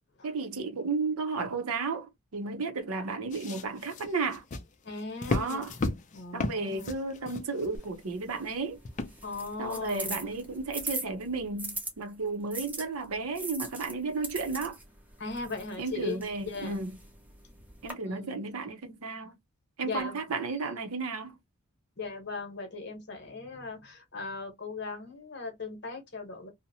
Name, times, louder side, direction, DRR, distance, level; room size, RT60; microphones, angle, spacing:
voice 1, 0.2-4.4 5.3-5.7 6.3-8.8 9.6-14.8 15.8-16.9 17.8-19.4 19.8-21.4, right 4 dB, 80° right, 0.6 m, -33 dB
sound 1, 3.3-8.0 8.8-9.4 10.0-10.1, left 2 dB, 35° left, 0.4 m, -35 dB
voice 2, 4.8-6.9 9.2-10.2 15.2-16.8 18.0-18.5 19.8-20.2 22.0-26.5, left 4 dB, 50° left, 0.9 m, -39 dB
sound 2, 7.7-11.9 12.5-17.9, right 2 dB, 5° right, 0.6 m, -41 dB
2.7 x 2.0 x 2.6 m
head